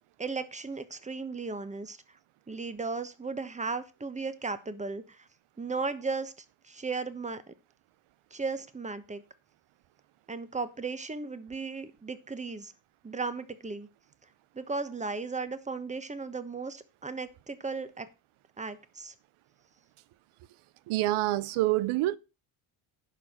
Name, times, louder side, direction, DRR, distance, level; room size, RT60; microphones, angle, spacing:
voice 1, 0.2-2.0 2.5-5.3 5.6-6.3 6.6-7.5 8.3-9.2 10.3-12.7 13.0-13.9 14.5-18.1 18.6-19.1, right 4 dB, 15° right, 1.2 m, -36 dB
voice 2, 20.9-22.2, right 16 dB, 90° right, 0.7 m, -26 dB
11.0 x 5.0 x 7.2 m
cardioid pair, 115°, 48 cm